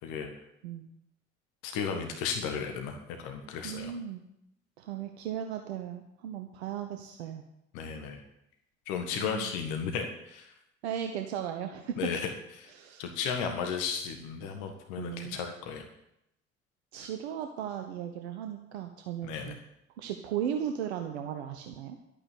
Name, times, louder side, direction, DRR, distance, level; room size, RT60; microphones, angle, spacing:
voice 1, 0.0-0.4 1.6-3.9 7.7-8.2 8.9-10.5 12.0-12.3 12.6-12.7 13.0-15.9 17.0-17.1 19.2-19.5, left 6 dB, 65° left, 5 dB, 1.7 m, -34 dB
voice 2, 3.6-4.2 4.8-7.4 9.2-9.5 10.8-12.1 12.7-13.0 15.0-15.4 16.9-19.6 20.0-22.0, right 9 dB, 75° right, 6 dB, 1.0 m, -36 dB
12.0 x 8.9 x 8.4 m, 0.82 s
figure-of-eight pair, 50°, 33 cm